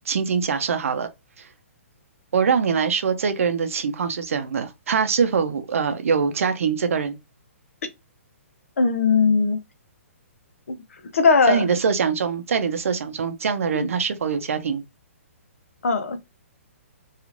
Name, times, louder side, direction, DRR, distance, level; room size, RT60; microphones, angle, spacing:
voice 1, 0.1-1.1 1.4-1.5 2.3-7.2 11.5-14.8, right 6 dB, 70° right, 0.6 m, -23 dB
voice 2, 8.8-9.6 11.1-11.6 13.7-13.9 15.8-16.2, left 4 dB, 70° left, 0.6 m, -18 dB
3.0 x 2.4 x 2.5 m
hypercardioid pair, 130°, 8 cm